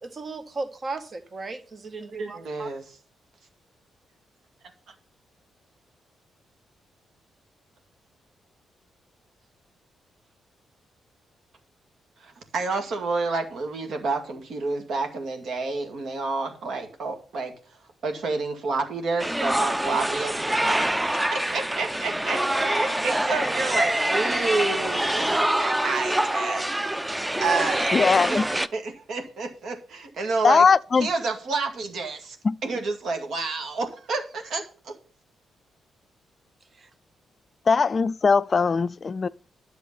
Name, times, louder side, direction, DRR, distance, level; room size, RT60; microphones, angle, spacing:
voice 1, 0.0-2.7 36.8-36.9, right 3 dB, 45° right, 1.6 m, -36 dB
voice 2, 2.0-2.9 12.2-17.5 18.0-20.9 21.3-27.1 27.4-27.9 28.3-28.4 28.7-30.7 31.0-32.4 32.6-34.9, right 3 dB, 65° right, 2.1 m, -29 dB
sound 1, 19.2-28.7, right 1 dB, 10° right, 0.7 m, -25 dB
voice 3, 27.9-28.5 30.4-31.1 32.4-32.6 37.7-39.3, left 5 dB, 45° left, 0.4 m, -20 dB
11.0 x 7.1 x 5.7 m
hypercardioid pair, 45°, 0 cm